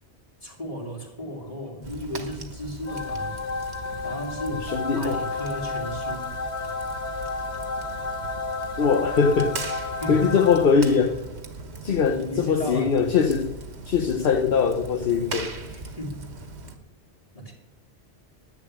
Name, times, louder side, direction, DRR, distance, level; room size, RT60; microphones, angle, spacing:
voice 1, 0.4-3.4 4.0-6.3 10.0-10.4 11.0-11.1 12.1-12.9 15.7-16.3 17.3-17.5, equal, 30° left, 0 dB, 2.9 m, -34 dB
Fire, 1.8-16.8, right 3 dB, 75° right, 1.7 m, -40 dB
sound 1, 2.9-11.1, left 3 dB, 80° left, 1.6 m, -32 dB
voice 2, 4.6-5.2 8.8-9.6 10.1-11.2 11.8-13.6 13.8-15.6, left 6 dB, 60° left, 7 dB, 1.0 m, -21 dB
10.5 x 10.5 x 8.7 m, 1.0 s
omnidirectional pair, 1.1 m